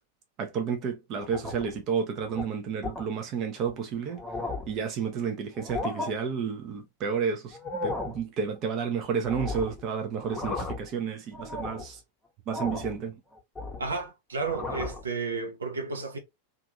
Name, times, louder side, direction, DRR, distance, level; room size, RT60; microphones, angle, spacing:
voice 1, 0.4-4.2 4.7-12.0 12.5-13.2, right 6 dB, 35° right, 0.6 m, -31 dB
sound 1, 1.2-1.8 2.2-2.4 2.8-3.1 3.7-3.8 4.1-4.8 5.5-6.1 7.5-8.2 9.3-9.8 10.2-10.9 11.3-11.9 12.5-13.0 13.3-14.0 14.4-15.0, left 3 dB, 10° left, 0.8 m, -35 dB
voice 2, 13.8-16.2, right 4 dB, 70° right, 0.7 m, -32 dB
2.7 x 2.4 x 2.5 m
figure-of-eight pair, 90°, 0 cm